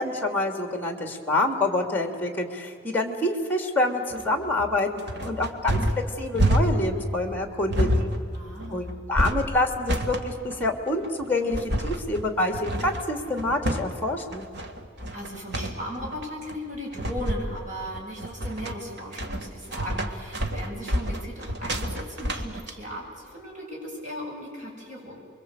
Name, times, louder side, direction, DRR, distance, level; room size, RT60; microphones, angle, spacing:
voice 1, 0.0-4.9 5.2-8.1 8.7-14.5, left 2 dB, 10° left, 4 dB, 2.9 m, -27 dB
sound 1, 4.1-22.7, equal, 60° right, 1.8 m, -28 dB
voice 2, 8.3-8.9 15.1-25.2, equal, 40° right, -2 dB, 7.2 m, -37 dB
29.0 x 23.0 x 8.2 m, 2.3 s
head